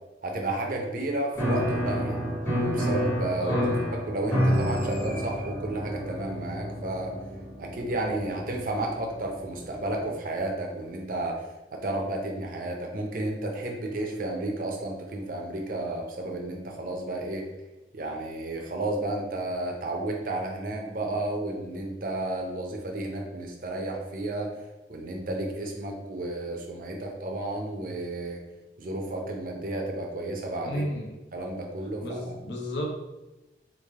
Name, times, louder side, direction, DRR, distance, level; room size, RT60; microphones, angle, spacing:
voice 1, 0.2-3.6 3.9-7.2 7.6-17.5 17.9-24.6 24.9-28.4 28.8-30.8 31.3-32.3, right 2 dB, 50° right, 1 dB, 0.5 m, -32 dB
Piano, 1.3-9.8, equal, 15° left, 0.8 m, -30 dB
voice 2, 3.4-3.8 30.6-31.1 32.0-32.9, equal, 75° left, 1 dB, 0.6 m, -32 dB
3.3 x 2.5 x 3.5 m, 1.0 s
head